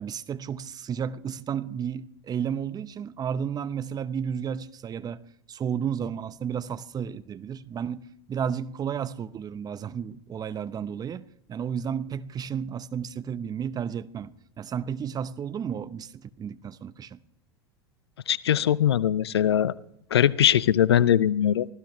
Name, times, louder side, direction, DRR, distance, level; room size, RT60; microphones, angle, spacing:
voice 1, 0.0-5.2 5.5-8.0 8.3-11.2 11.5-17.2, right 8 dB, 30° right, 0.9 m, -32 dB
voice 2, 18.3-19.7 20.1-21.7, left 10 dB, 80° left, 0.6 m, -21 dB
24.5 x 15.5 x 3.2 m
hypercardioid pair, 85°, 13 cm